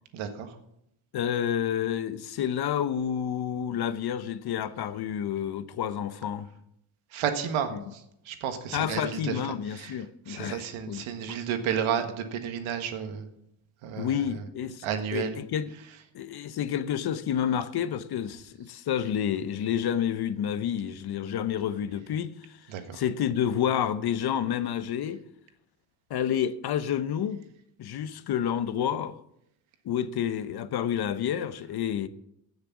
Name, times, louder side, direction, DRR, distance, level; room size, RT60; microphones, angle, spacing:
voice 1, 0.1-0.6 7.1-9.4 9.7-9.9 10.3-13.3 13.8-14.4 14.8-15.4 22.7-23.0, right 8 dB, 85° right, 1.6 m, -32 dB
voice 2, 1.1-6.5 7.7-7.8 8.7-11.4 14.0-14.9 15.1-15.7 16.1-25.2 26.1-27.4 27.8-29.2 29.8-32.1, left 9 dB, 55° left, 0.9 m, -29 dB
15.0 x 6.7 x 6.0 m
cardioid pair, 110°, 47 cm